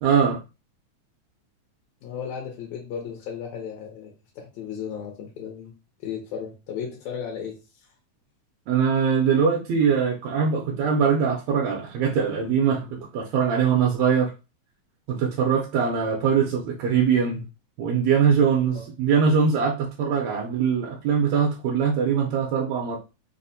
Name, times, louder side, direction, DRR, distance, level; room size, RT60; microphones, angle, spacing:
voice 1, 0.0-0.4 8.7-14.3 15.1-17.4 17.8-23.0, right 6 dB, 75° right, 1.8 m, -22 dB
voice 2, 2.0-5.7 6.0-7.5 18.7-18.9, left 7 dB, 75° left, 2.0 m, -35 dB
4.8 x 2.0 x 2.6 m
omnidirectional pair, 3.4 m